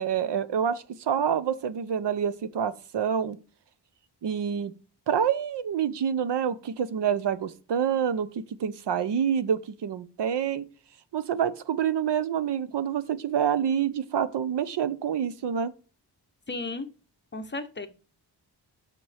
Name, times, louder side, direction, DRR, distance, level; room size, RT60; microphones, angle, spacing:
voice 1, 0.0-3.4 4.2-4.7 5.1-10.6 11.1-15.7, right 8 dB, 75° right, 0.8 m, -27 dB
voice 2, 16.5-16.9 17.3-17.9, left 3 dB, 25° left, 0.9 m, -34 dB
8.7 x 6.0 x 3.4 m
wide cardioid pair, 160°, 42 cm